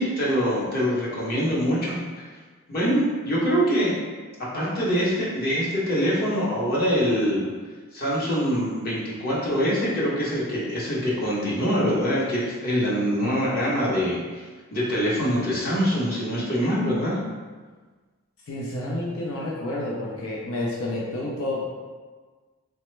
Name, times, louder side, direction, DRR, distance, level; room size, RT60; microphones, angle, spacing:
voice 1, 0.0-2.0 2.7-3.9 4.4-7.5 7.9-14.4 14.7-17.2, equal, 45° left, -7 dB, 0.7 m, -24 dB
voice 2, 18.5-21.6, left 1 dB, 85° left, -5 dB, 0.5 m, -29 dB
3.2 x 2.1 x 3.1 m, 1.4 s
head